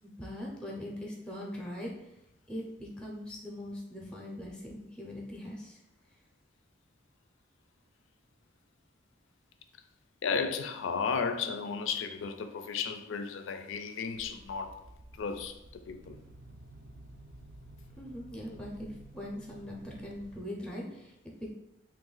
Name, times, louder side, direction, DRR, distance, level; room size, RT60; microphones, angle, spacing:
voice 1, 0.0-2.1 2.5-5.8 18.0-18.9 19.1-21.5, left 1 dB, 5° left, -2 dB, 0.5 m, -41 dB
voice 2, 10.2-14.8 15.2-16.2, left 5 dB, 80° left, 7 dB, 0.4 m, -34 dB
sound 1, 14.1-20.4, right 1 dB, 60° right, 0.5 m, -52 dB
3.0 x 2.3 x 3.8 m, 0.87 s
head